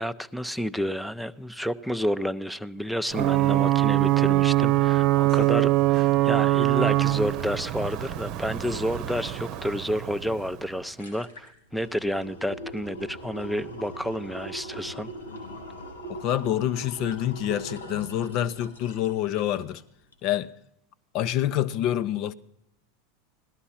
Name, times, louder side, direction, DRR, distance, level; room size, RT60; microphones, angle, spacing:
voice 1, 0.0-15.1, equal, ahead, 0.7 m, -30 dB
Ocean / Boat Water vehicle / Alarm, 3.1-10.7, right 16 dB, 50° right, 0.9 m, -23 dB
sound 1, 11.0-19.8 20.1-20.2, right 1 dB, 90° left, 4.3 m, -41 dB
voice 2, 16.1-19.8 20.2-20.5 21.1-22.3, left 11 dB, 50° left, 0.9 m, -27 dB
17.5 x 12.5 x 5.8 m
hypercardioid pair, 90°, 0 cm